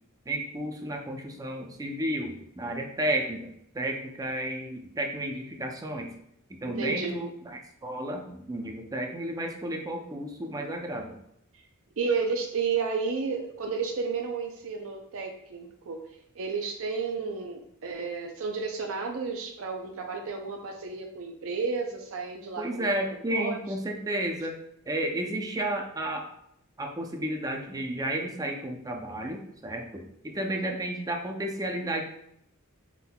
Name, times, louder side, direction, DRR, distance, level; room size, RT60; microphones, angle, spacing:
voice 1, 0.3-3.5 3.7-6.1 6.5-11.2 22.6-24.6 24.9-26.3 26.8-32.0, right 1 dB, 15° right, 2 dB, 0.5 m, -32 dB
voice 2, 6.6-7.2 11.5-11.6 12.0-16.0 16.4-22.9 23.3-23.6 30.5-30.6, right 5 dB, 65° right, 2 dB, 0.5 m, -32 dB
5.9 x 3.6 x 2.3 m, 0.73 s
head